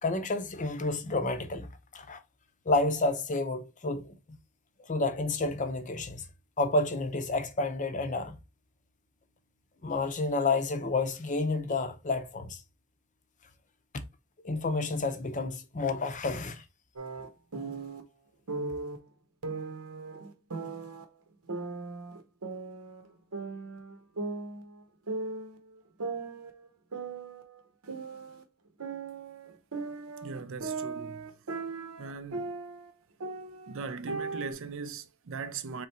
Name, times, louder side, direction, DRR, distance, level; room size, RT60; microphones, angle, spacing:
voice 1, 0.0-2.2 2.7-4.4 4.8-6.3 6.6-8.4 9.8-12.6 14.4-16.6, left 3 dB, 35° left, 0.6 m, -30 dB
sound 1, 17.0-18.0 18.5-19.0 19.4-21.0 21.5-23.1 23.3-24.8 25.1-25.6 26.0-28.4 28.8-32.9 33.2-34.5, right 3 dB, 80° right, 0.9 m, -38 dB
voice 2, 30.2-31.3 32.0-32.5 33.7-35.9, right 5 dB, 60° right, 0.5 m, -39 dB
3.8 x 3.3 x 4.3 m
head